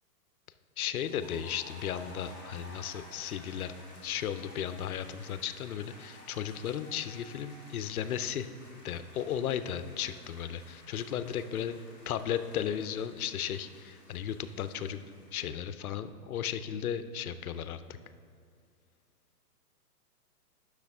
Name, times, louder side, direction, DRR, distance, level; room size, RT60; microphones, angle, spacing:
voice 1, 0.8-3.7 4.0-8.5 8.8-11.7 12.1-15.0 15.3-17.8, left 9 dB, 65° left, 12 dB, 0.5 m, -35 dB
sound 1, 0.9-15.5, left 1 dB, 10° right, 0.9 m, -53 dB
9.9 x 6.3 x 3.5 m, 2.1 s
hypercardioid pair, 160°, 48 cm